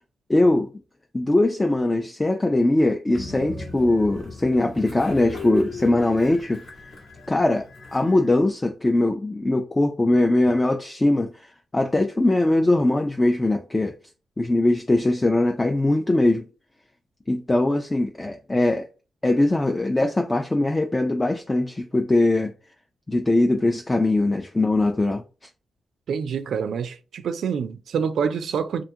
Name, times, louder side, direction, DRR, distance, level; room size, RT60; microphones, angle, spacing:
voice 1, 0.3-0.7 1.1-6.6 7.3-7.7 7.9-13.9 14.4-16.5 17.3-18.9 19.2-22.5 23.1-25.2, left 2 dB, 20° left, 0.3 m, -21 dB
Train, 3.1-8.4, left 1 dB, 70° left, 1.2 m, -36 dB
voice 2, 26.1-28.8, right 6 dB, 75° right, 0.3 m, -26 dB
2.4 x 2.3 x 2.7 m
cardioid pair, 65°, 0 cm